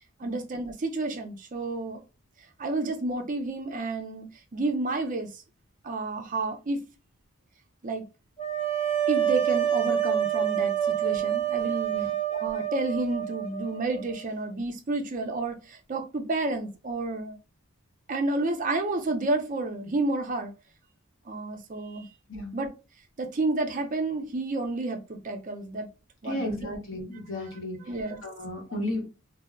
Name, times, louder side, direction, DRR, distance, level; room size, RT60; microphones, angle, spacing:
voice 1, 0.2-2.0 2.6-4.3 4.5-5.3 5.8-6.8 7.8-8.0 8.8-11.9 12.3-17.4 18.1-20.5 21.3-22.1 22.5-22.7 23.2-25.9 26.2-26.7 27.8-28.2, right 2 dB, 35° right, 0.4 m, -30 dB
sound 1, 8.4-14.3, right 10 dB, 25° left, 0.5 m, -27 dB
voice 2, 26.3-27.9 28.2-29.2, left 1 dB, 60° left, 1.0 m, -34 dB
2.2 x 2.0 x 3.5 m
head